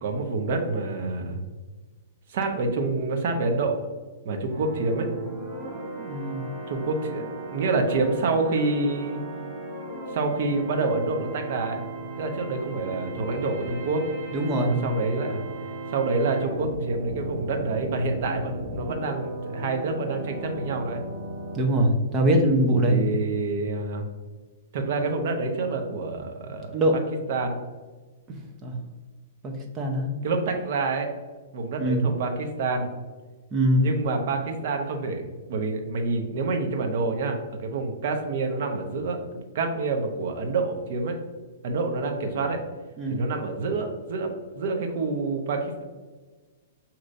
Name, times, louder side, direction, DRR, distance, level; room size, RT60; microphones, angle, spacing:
voice 1, 0.0-1.4 2.3-3.7 4.2-5.1 6.7-9.2 10.1-11.8 12.2-14.1 14.6-15.4 15.9-21.0 22.8-24.1 24.7-26.8 27.3-27.6 30.2-31.1 31.5-32.9 33.8-35.2 35.5-41.2 41.6-42.6 43.1-44.3 44.6-45.8, right 3 dB, 55° right, 4 dB, 0.8 m, -27 dB
sound 1, 4.5-21.6, right 2 dB, 5° right, 1.2 m, -36 dB
voice 2, 6.0-6.4 14.3-14.7 21.5-23.0 26.7-27.0 28.6-28.8 29.4-30.1 31.8-32.1 33.5-33.9 43.0-43.2, right 1 dB, 20° right, 2 dB, 0.7 m, -22 dB
6.5 x 2.9 x 2.6 m, 1.3 s
hypercardioid pair, 155°, 0 cm